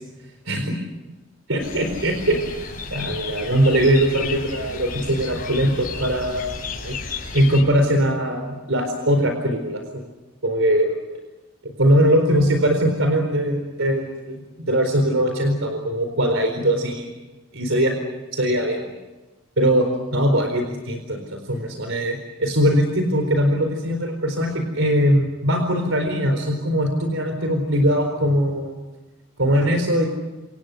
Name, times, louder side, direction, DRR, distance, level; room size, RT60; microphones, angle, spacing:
voice 1, 0.5-0.8 1.5-2.6 2.9-6.5 6.8-7.0 7.3-10.0 10.4-10.9 11.6-17.1 17.5-17.9 18.3-18.9 19.6-19.9 20.1-28.7 29.4-30.1, equal, 70° right, 5 dB, 4.3 m, -21 dB
sound 1, 1.6-7.6, left 4 dB, 45° left, 7.2 m, -33 dB
29.0 x 27.5 x 6.6 m, 1.1 s
head